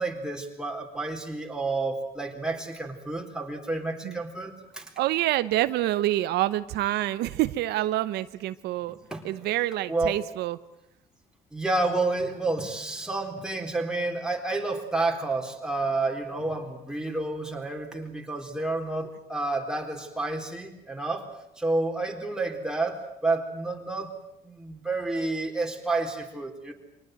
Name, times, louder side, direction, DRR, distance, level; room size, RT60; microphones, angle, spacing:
voice 1, 0.0-4.9 9.1-9.3 9.9-10.2 11.5-21.3 21.6-24.1 24.4-26.7, right 2 dB, 5° right, 2 dB, 4.1 m, -30 dB
voice 2, 5.0-9.0 9.2-10.6, right 15 dB, 80° right, 13 dB, 0.9 m, -27 dB
24.5 x 19.0 x 9.4 m, 0.84 s
cardioid pair, 110°, 17 cm